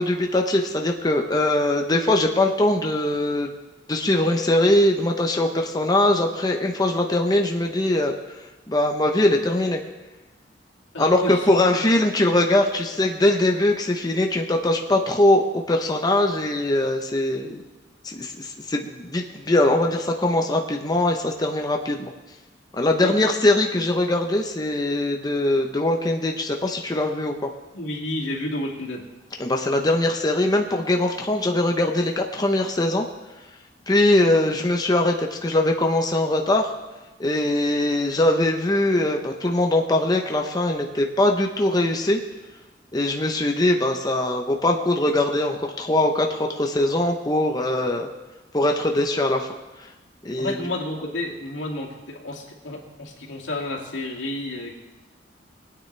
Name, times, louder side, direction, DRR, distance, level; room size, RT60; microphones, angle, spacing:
voice 1, 0.0-3.5 3.9-8.1 8.7-9.8 11.0-17.6 18.0-22.1 22.7-27.5 29.4-33.0 33.9-36.7 37.2-42.2 42.9-48.1 48.5-49.5 50.2-50.5, left 1 dB, 20° left, 2 dB, 0.8 m, -21 dB
voice 2, 10.9-11.4 23.0-23.1 27.7-29.1 50.4-54.7, left 1 dB, 85° left, -2 dB, 2.3 m, -31 dB
20.5 x 9.2 x 3.3 m, 1.1 s
head